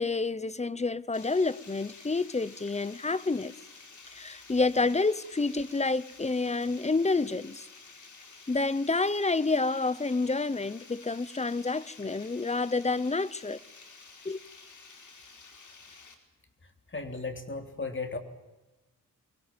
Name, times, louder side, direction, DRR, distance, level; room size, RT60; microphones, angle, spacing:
voice 1, 0.0-3.5 4.1-7.7 8.5-13.6 14.2-14.4, left 3 dB, 20° left, 0.8 m, -28 dB
Water, 1.1-16.1, left 4 dB, 60° left, 4.7 m, -51 dB
voice 2, 16.6-18.2, left 3 dB, 35° left, 3.4 m, -36 dB
23.5 x 22.0 x 9.2 m
wide cardioid pair, 100°, 32 cm